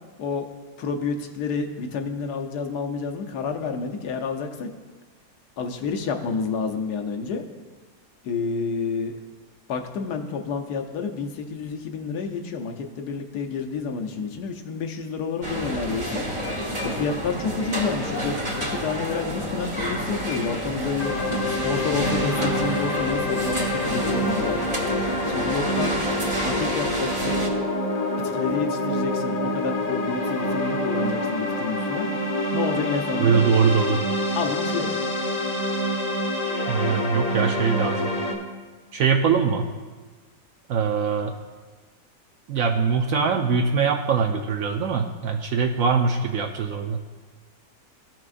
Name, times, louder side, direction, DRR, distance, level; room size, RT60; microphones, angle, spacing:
voice 1, 0.8-4.7 5.6-7.4 8.2-9.1 9.7-16.2 16.8-18.4 18.7-21.1 21.5-24.6 25.3-26.0 26.4-27.4 28.2-32.1 32.5-33.4 34.3-35.0, left 5 dB, 80° left, 4 dB, 1.4 m, -29 dB
sound 1, 15.4-27.5, equal, 30° right, 1.2 m, -29 dB
sound 2, 21.0-38.3, left 1 dB, 40° left, 0.6 m, -26 dB
voice 2, 33.2-34.0 36.7-38.1 38.9-39.7 40.7-41.4 42.5-47.0, right 6 dB, 70° right, 3 dB, 0.9 m, -22 dB
15.0 x 6.0 x 2.5 m, 1.4 s
omnidirectional pair, 1.7 m